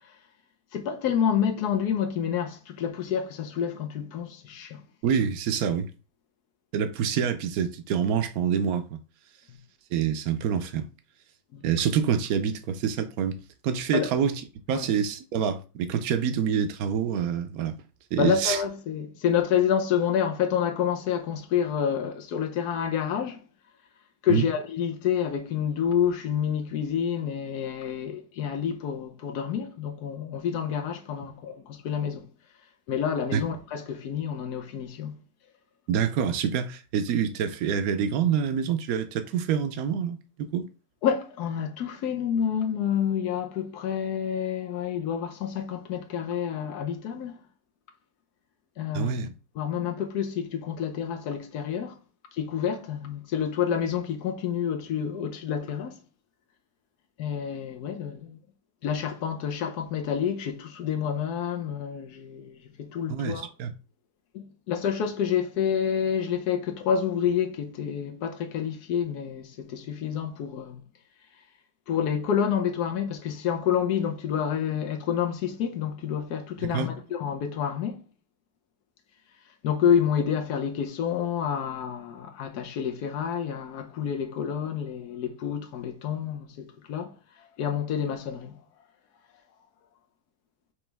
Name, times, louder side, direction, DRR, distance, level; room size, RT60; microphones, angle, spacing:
voice 1, 0.7-4.8 11.5-11.6 13.9-14.1 14.7-14.9 18.2-23.4 24.2-32.3 32.9-35.1 41.0-47.4 48.8-49.2 49.6-51.9 52.3-56.0 57.2-58.4 58.8-63.5 64.3-70.8 71.9-78.0 79.6-87.1 87.6-88.6, left 8 dB, 90° left, 1.3 m, -28 dB
voice 2, 5.0-5.9 6.7-9.0 9.9-10.9 11.6-14.4 14.7-17.8 18.1-18.6 24.3-24.4 33.3-33.4 35.9-40.7 48.9-49.3 63.1-63.7 76.7-76.9, right 7 dB, 75° right, 1.1 m, -26 dB
5.1 x 3.1 x 3.4 m
omnidirectional pair, 1.6 m